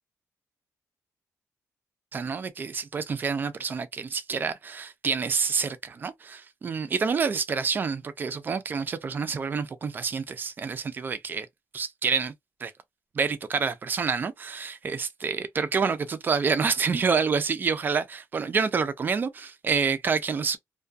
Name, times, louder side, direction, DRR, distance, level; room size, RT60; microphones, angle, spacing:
voice 1, 2.1-11.5 11.7-12.3 12.6-12.7 13.1-20.6, right 5 dB, 35° right, 0.4 m, -28 dB
2.3 x 2.2 x 2.5 m
wide cardioid pair, 145°, 6 cm